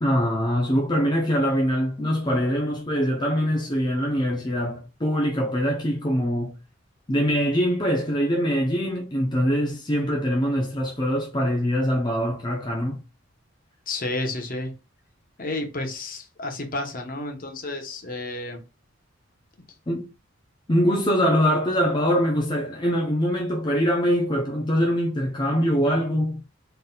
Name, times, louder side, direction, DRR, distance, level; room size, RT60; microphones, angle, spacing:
voice 1, 0.0-6.5 7.1-13.0 19.9-20.1 20.7-26.4, equal, 20° left, 0.6 m, -23 dB
voice 2, 13.9-14.7 15.4-18.6, left 2 dB, 45° left, 1.0 m, -31 dB
4.0 x 3.9 x 2.3 m
head